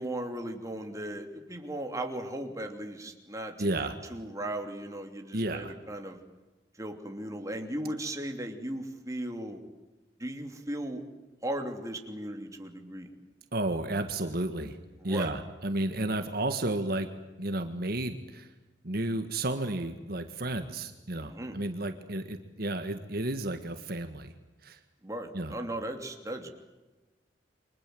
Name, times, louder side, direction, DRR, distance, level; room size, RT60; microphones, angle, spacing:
voice 1, 0.0-6.2 6.8-9.6 10.2-11.0 11.4-13.1 15.0-15.3 21.2-21.6 25.0-26.5, right 1 dB, 20° right, 4 dB, 2.9 m, -37 dB
voice 2, 3.6-4.0 5.3-5.7 13.5-14.8 15.0-17.1 17.4-18.5 18.8-24.3 24.6-24.8 25.3-25.5, right 2 dB, 55° right, 7 dB, 1.7 m, -32 dB
29.5 x 24.0 x 7.8 m, 1.1 s
head